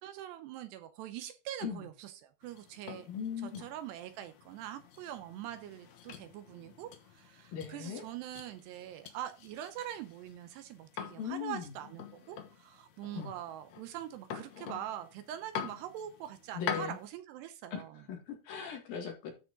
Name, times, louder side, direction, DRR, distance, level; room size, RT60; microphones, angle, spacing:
voice 1, 0.0-3.1 3.4-18.0, right 11 dB, 80° right, 2.7 m, -43 dB
sound 1, 2.4-17.1, left 8 dB, 90° left, 1.5 m, -46 dB
voice 2, 3.1-3.6 7.5-8.0 11.2-11.7 13.1-13.3 16.5-17.0 17.7-17.8 18.1-19.3, left 7 dB, 60° left, 3.2 m, -39 dB
13.0 x 4.8 x 3.8 m
omnidirectional pair, 5.2 m